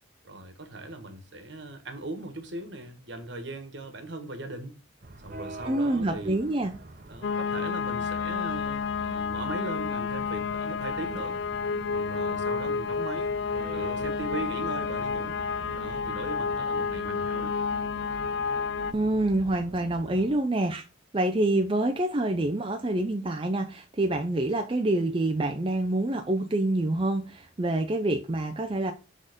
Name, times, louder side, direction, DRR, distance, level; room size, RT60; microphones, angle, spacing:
voice 1, 0.2-4.8 5.2-6.3 7.1-11.4 11.9-13.3 13.7-15.4 15.7-17.5, right 2 dB, 65° right, 1.3 m, -39 dB
sound 1, 5.0-15.8, right 2 dB, 45° right, 0.9 m, -45 dB
voice 2, 5.6-6.7 18.9-20.8 21.1-28.9, right 1 dB, 25° right, 0.5 m, -26 dB
sound 2, 7.2-18.9, left 5 dB, 60° left, 0.4 m, -30 dB
sound 3, 10.6-20.6, right 3 dB, 85° right, 0.7 m, -47 dB
6.4 x 3.7 x 5.0 m
head